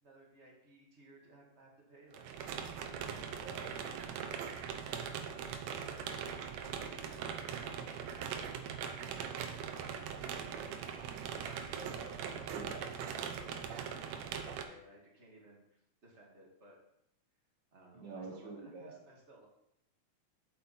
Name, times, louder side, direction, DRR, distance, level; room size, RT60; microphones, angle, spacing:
voice 1, 0.0-2.3 2.8-4.6 4.9-10.8 11.3-11.6 11.9-12.0 12.4-16.8 17.7-19.5, right 1 dB, 30° right, -2 dB, 1.5 m, -59 dB
sound 1, 2.1-14.6, right 7 dB, 75° right, 1.7 m, -41 dB
voice 2, 3.3-3.7 11.8-12.8 17.9-19.0, right 3 dB, 60° right, 0 dB, 1.2 m, -47 dB
8.5 x 7.3 x 4.1 m, 0.82 s
omnidirectional pair, 3.8 m